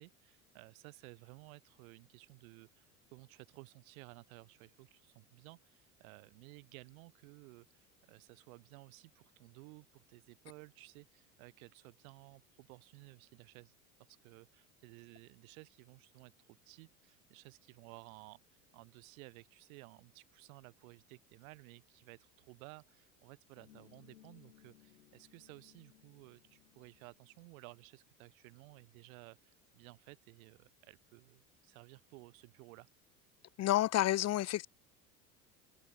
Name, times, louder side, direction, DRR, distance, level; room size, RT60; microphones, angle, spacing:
voice 1, 0.0-13.7 14.1-18.4 18.7-32.9, right 26 dB, 70° right, 3.7 m, -56 dB
sound 1, 23.6-27.6, left 12 dB, 85° left, 5.2 m, -64 dB
voice 2, 33.6-34.7, left 14 dB, 35° left, 0.8 m, -30 dB
hypercardioid pair, 75°, 43 cm